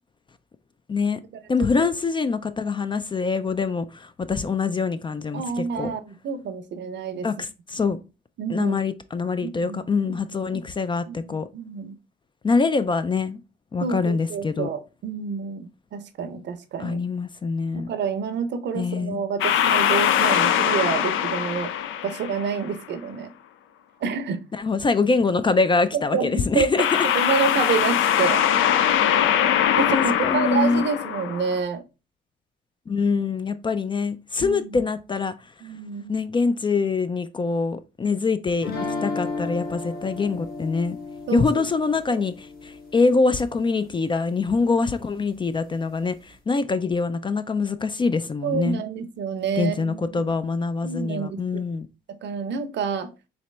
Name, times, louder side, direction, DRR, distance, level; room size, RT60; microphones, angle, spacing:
voice 1, 0.9-1.2 1.5-5.9 7.2-8.0 8.5-11.5 12.4-13.4 13.7-14.7 16.8-17.9 18.7-19.2 24.5-27.1 29.9-30.9 32.9-35.5 36.1-38.7 39.0-41.0 41.3-48.8 49.6-51.9, left 4 dB, 25° left, 0.3 m, -24 dB
voice 2, 5.3-7.3 8.4-8.8 9.4-9.8 10.5-10.6 11.1-11.9 13.8-17.0 17.7-21.7 22.0-23.3 24.0-24.4 25.9-26.9 27.1-28.4 29.8-31.8 34.4-34.8 35.6-36.2 41.3-41.6 42.1-42.2 48.4-50.3 50.8-51.6 52.2-53.1, right 6 dB, 60° right, 0.7 m, -28 dB
sound 1, 19.4-22.7 26.8-31.6, left 10 dB, 80° left, 0.5 m, -22 dB
sound 2, 38.6-43.6, left 3 dB, 50° left, 1.3 m, -34 dB
4.2 x 2.9 x 3.2 m
cardioid pair, 90°, 20 cm